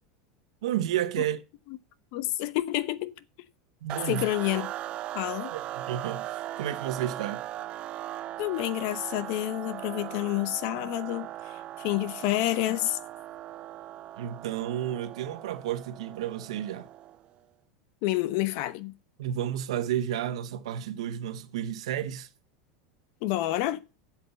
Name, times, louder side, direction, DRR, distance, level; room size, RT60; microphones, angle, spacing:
voice 1, 0.6-1.4 3.8-4.3 5.5-7.4 14.2-16.9 19.2-22.3, right 11 dB, 85° right, 1.1 m, -31 dB
voice 2, 2.1-3.1 4.1-4.7 5.1-5.5 8.4-13.0 18.0-18.9 23.2-23.8, left 15 dB, 60° left, 1.0 m, -29 dB
sound 1, 3.9-17.3, right 13 dB, 35° right, 0.6 m, -39 dB
8.1 x 7.2 x 7.0 m
supercardioid pair, 140°, 3 cm